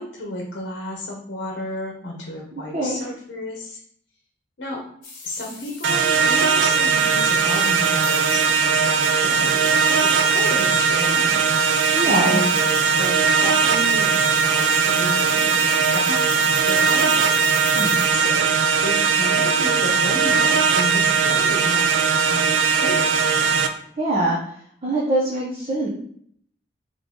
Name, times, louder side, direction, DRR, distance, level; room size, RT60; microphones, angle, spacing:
voice 1, 0.0-3.8 4.6-4.8 5.2-9.7 10.0-11.4 11.7-16.2 16.5-17.2 18.1-23.3, left 1 dB, 75° left, -1 dB, 0.9 m, -32 dB
sound 1, 5.0-18.1, left 3 dB, 50° left, 1.6 m, -37 dB
sound 2, 5.8-23.7, right 5 dB, 80° right, 0.4 m, -19 dB
voice 2, 11.9-12.4 17.7-18.0 24.0-24.4 24.8-25.9, right 2 dB, 35° right, -5 dB, 0.8 m, -23 dB
3.7 x 3.3 x 3.7 m, 0.64 s
head